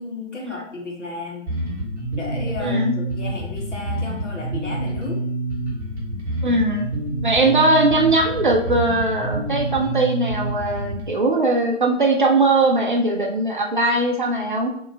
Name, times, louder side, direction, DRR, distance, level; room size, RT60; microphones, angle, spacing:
voice 1, 0.0-1.5 2.2-5.3, left 3 dB, 70° left, -1 dB, 1.3 m, -33 dB
Bass guitar, 1.5-11.1, right 1 dB, 15° right, 1.0 m, -27 dB
voice 2, 2.6-2.9 6.4-6.9 7.2-14.7, right 2 dB, 40° right, 1 dB, 0.4 m, -20 dB
2.9 x 2.4 x 4.2 m, 0.72 s
figure-of-eight pair, 145°, 38 cm